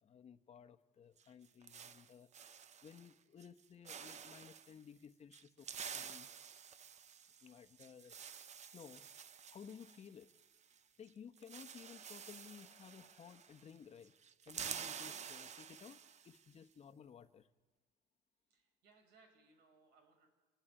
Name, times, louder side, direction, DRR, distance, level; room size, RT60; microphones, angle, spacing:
voice 1, 0.0-6.3 7.4-8.2 8.6-9.1 9.5-10.3 11.0-17.5, left 7 dB, 40° left, 9 dB, 1.0 m, -57 dB
sound 1, 1.2-3.1 3.4-3.6 3.9-4.7 5.3-10.8 11.0-11.1 11.4-13.8 14.0-16.4, right 7 dB, 40° right, 0.9 m, -50 dB
voice 2, 18.5-20.3, right 4 dB, 90° right, 6 dB, 5.0 m, -68 dB
28.5 x 12.0 x 9.9 m, 1.3 s
cardioid pair, 110°, 17 cm